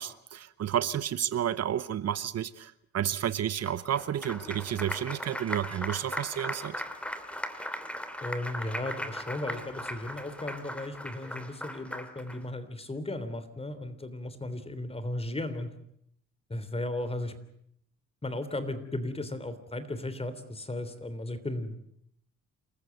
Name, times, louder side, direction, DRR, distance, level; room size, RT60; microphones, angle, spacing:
voice 1, 0.0-6.8, right 10 dB, 55° right, 16 dB, 0.9 m, -31 dB
Applause, 3.7-12.4, equal, 5° left, 2.8 m, -38 dB
voice 2, 8.2-15.7 16.5-17.3 18.2-21.8, left 1 dB, 20° left, 12 dB, 3.3 m, -35 dB
28.0 x 14.5 x 9.2 m, 0.74 s
cardioid pair, 90°, 30 cm